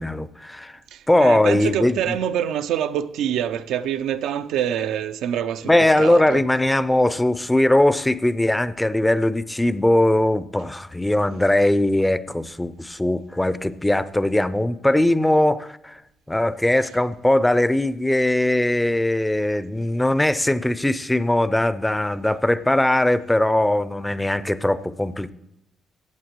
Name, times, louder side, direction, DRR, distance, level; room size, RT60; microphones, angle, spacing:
voice 1, 0.0-0.8 1.1-2.2 5.6-16.0 16.3-25.3, left 1 dB, 10° left, 0.4 m, -20 dB
voice 2, 0.9-6.4, right 10 dB, 85° right, 0.4 m, -26 dB
15.0 x 8.1 x 3.1 m
cardioid pair, 90°, 0 cm